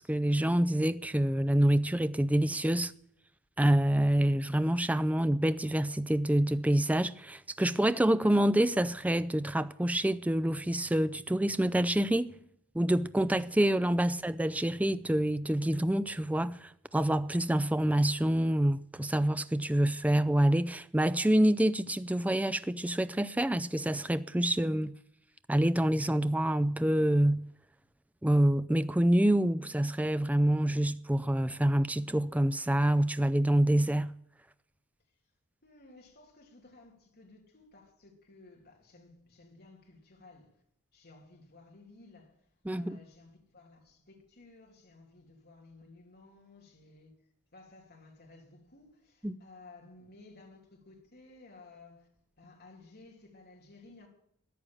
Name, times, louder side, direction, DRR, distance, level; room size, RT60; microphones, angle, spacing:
voice 1, 0.1-2.9 3.6-12.3 12.7-24.9 25.5-27.4 28.2-34.1 42.7-43.0 49.2-49.4, right 1 dB, 5° right, 0.4 m, -27 dB
voice 2, 35.6-40.6 40.9-47.1 47.5-52.1 52.4-54.1, left 3 dB, 45° left, 3.0 m, -56 dB
14.0 x 9.7 x 7.2 m
head